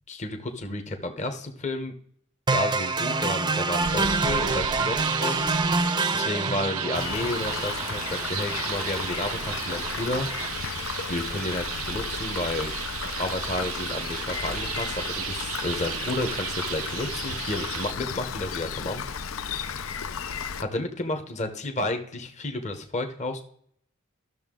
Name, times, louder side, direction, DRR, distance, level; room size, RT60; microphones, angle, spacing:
voice 1, 0.1-1.9 2.5-5.5 5.8-10.3 10.5-10.7 11.1-12.7 13.2-19.0 20.2-23.4, left 2 dB, 35° left, 5 dB, 0.9 m, -31 dB
sound 1, 2.5-10.5, right 3 dB, 20° right, 0.6 m, -27 dB
sound 2, 3.8-17.9, right 12 dB, 80° right, 0.4 m, -35 dB
Rain, 6.9-20.6, left 6 dB, 80° left, 0.6 m, -34 dB
12.5 x 6.7 x 3.7 m, 0.65 s
head